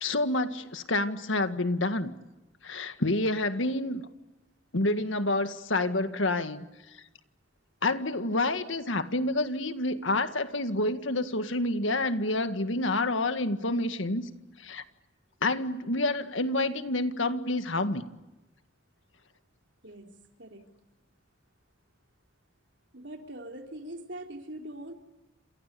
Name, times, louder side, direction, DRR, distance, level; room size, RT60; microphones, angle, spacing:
voice 1, 0.0-2.1 2.6-4.1 4.7-6.7 7.8-14.2 14.6-14.8 15.4-18.0, left 2 dB, 80° left, 9 dB, 1.8 m, -28 dB
voice 2, 22.9-24.9, right 1 dB, 65° right, 3 dB, 3.7 m, -42 dB
28.5 x 27.5 x 6.9 m, 1.0 s
head